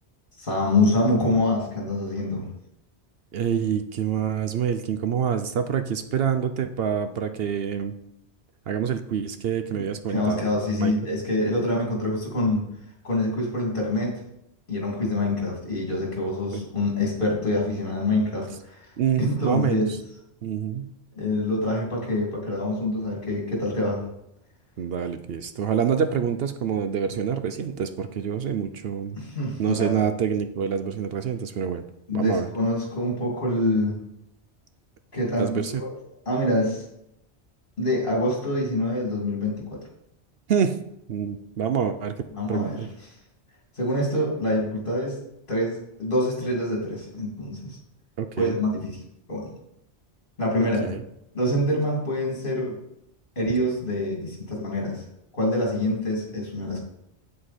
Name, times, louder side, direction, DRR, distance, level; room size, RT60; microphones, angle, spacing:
voice 1, 0.4-2.5 10.1-12.6 13.0-14.1 14.7-18.8 19.2-19.8 21.2-24.0 29.1-30.0 32.1-34.0 35.1-35.9 36.3-36.8 37.8-39.8 42.3-42.8 43.8-45.2 45.5-47.6 48.4-49.0 49.3-49.5 50.4-50.9 51.3-52.8 53.4-55.0 55.3-56.8, left 1 dB, 50° left, -2 dB, 2.8 m, -25 dB
voice 2, 3.3-7.9 8.7-10.5 10.8-10.9 16.5-16.6 19.0-20.0 20.4-20.9 24.8-29.2 29.6-31.8 32.1-32.5 35.3-35.8 40.5-40.8 41.1-42.1 42.4-42.9 48.2-48.6 50.8-51.0, right 7 dB, 65° right, 9 dB, 0.8 m, -26 dB
8.3 x 7.7 x 4.2 m, 0.80 s
omnidirectional pair, 1.2 m